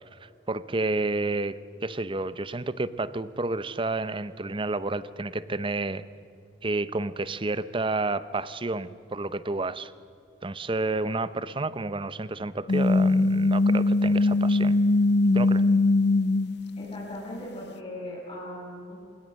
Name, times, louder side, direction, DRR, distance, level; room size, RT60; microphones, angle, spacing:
voice 1, 0.2-6.0 6.6-9.9 10.4-14.8 15.3-15.6, right 2 dB, 30° right, 15 dB, 0.7 m, -30 dB
sound 1, 12.7-17.2, left 2 dB, 65° left, 0.8 m, -21 dB
voice 2, 16.8-18.9, left 1 dB, 35° left, -6 dB, 6.3 m, -38 dB
27.0 x 21.5 x 6.4 m, 2.5 s
head